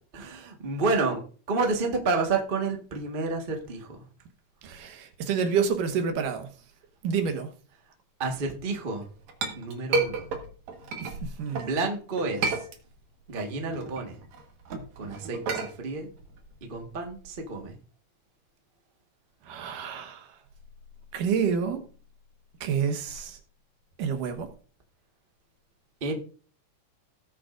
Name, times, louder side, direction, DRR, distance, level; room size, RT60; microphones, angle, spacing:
voice 1, 0.1-1.2 1.5-4.0 8.2-9.0 9.6-10.2 11.5-12.6 13.3-14.1 15.0-16.1 16.7-17.7 26.0-26.1, right 3 dB, 35° right, 0.9 m, -30 dB
voice 2, 4.6-6.5 7.0-7.5 11.0-11.8 19.4-20.4 21.1-21.8 22.6-23.4 24.0-24.5, right 6 dB, 85° right, 2.9 m, -29 dB
Chink clink, 8.9-11.7 12.2-13.2 13.6-17.6, right 4 dB, 65° right, 2.7 m, -32 dB
18.5 x 7.7 x 2.6 m
omnidirectional pair, 3.7 m